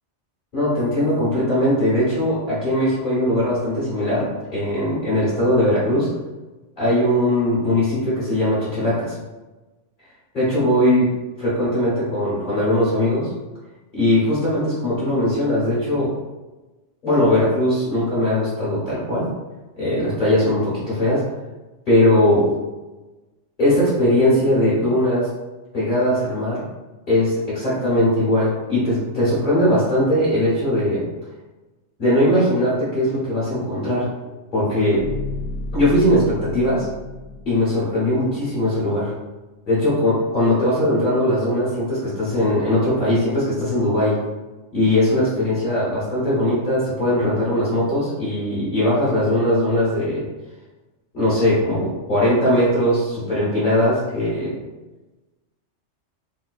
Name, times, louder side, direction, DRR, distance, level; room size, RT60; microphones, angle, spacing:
voice 1, 0.5-6.1 6.8-9.1 10.3-11.1 11.4-13.3 13.9-16.2 17.0-19.3 19.8-21.2 21.9-22.5 23.6-25.3 25.7-26.7 27.1-31.1 32.0-34.1 34.5-35.1 35.7-36.9 37.5-39.1 39.7-44.2 44.7-50.2 51.1-54.5, left 1 dB, 45° left, -10 dB, 1.3 m, -20 dB
sound 1, 33.8-37.8, left 2 dB, 65° left, 1.2 m, -32 dB
3.6 x 3.0 x 2.4 m, 1.1 s
omnidirectional pair, 1.3 m